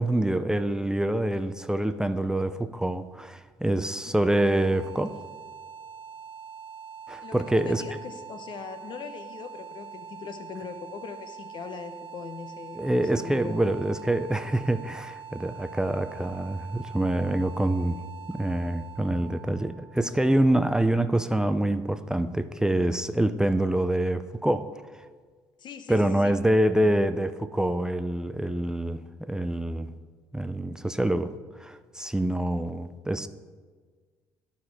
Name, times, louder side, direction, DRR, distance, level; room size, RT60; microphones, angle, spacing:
voice 1, 0.0-5.2 7.1-7.8 12.8-18.0 18.3-25.0 25.9-29.9 30.3-31.3 31.6-33.3, right 1 dB, 5° right, 11 dB, 0.4 m, -26 dB
sound 1, 4.2-21.1, right 7 dB, 60° right, 0.7 m, -44 dB
voice 2, 7.2-13.6 25.6-26.4, left 6 dB, 55° left, 9 dB, 0.7 m, -40 dB
9.5 x 4.3 x 4.6 m, 1.5 s
supercardioid pair, 70°, 9 cm